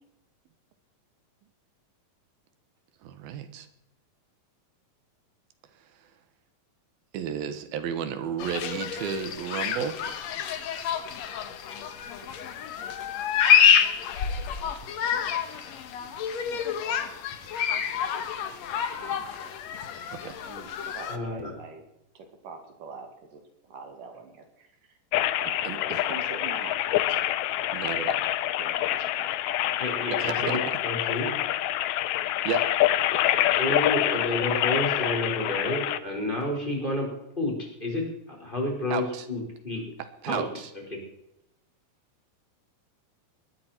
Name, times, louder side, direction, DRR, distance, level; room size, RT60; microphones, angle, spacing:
voice 1, 3.0-3.7 7.1-10.1 20.1-20.4 25.6-26.0 27.7-28.2 30.1-30.8 32.4-32.7 38.9-39.3 40.2-40.7, right 8 dB, 85° right, 11 dB, 3.1 m, -33 dB
sound 1, 8.4-21.2, left 8 dB, 60° left, 2.1 m, -27 dB
voice 2, 19.0-19.6 20.3-20.7 20.9-21.8 22.2-24.7 25.1-27.3 28.6-29.3 29.8-29.9, right 4 dB, 65° right, 4 dB, 3.7 m, -44 dB
voice 3, 21.1-21.5 29.8-31.4 33.2-39.8 40.3-40.4 40.9-41.0, left 1 dB, 15° left, -1 dB, 5.0 m, -30 dB
sound 2, 25.1-36.0, left 13 dB, 75° left, 1.7 m, -26 dB
20.0 x 13.5 x 4.5 m, 0.82 s
omnidirectional pair, 4.1 m